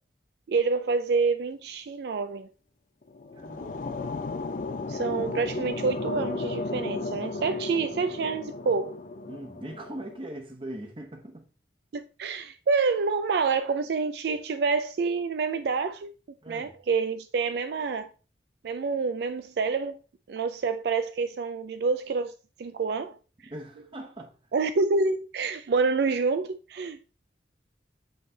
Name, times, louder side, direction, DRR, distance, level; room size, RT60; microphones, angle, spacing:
voice 1, 0.5-2.5 4.9-9.0 11.9-16.1 16.5-18.1 18.6-20.0 20.3-23.2 24.5-27.1, right 4 dB, 65° right, 0.4 m, -27 dB
sound 1, 3.0-10.2, left 3 dB, 45° left, 0.4 m, -34 dB
voice 2, 3.3-4.0 9.3-11.5 16.4-16.8 23.4-24.5, right 1 dB, 30° right, 1.0 m, -41 dB
7.9 x 3.2 x 3.9 m
head